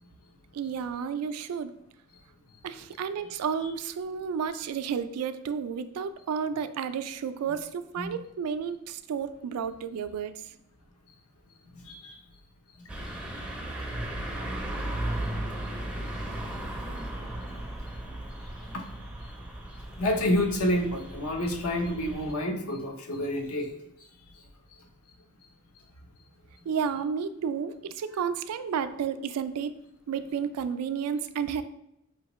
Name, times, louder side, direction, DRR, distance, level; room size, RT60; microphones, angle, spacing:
voice 1, 0.5-1.7 2.6-10.5 26.7-29.7 30.1-31.6, right 7 dB, 85° right, 12 dB, 0.3 m, -32 dB
sound 1, 12.9-22.3, right 1 dB, 5° right, 0.4 m, -36 dB
voice 2, 20.0-23.7, left 1 dB, 70° left, 3 dB, 0.7 m, -28 dB
4.7 x 2.9 x 3.0 m, 0.84 s
head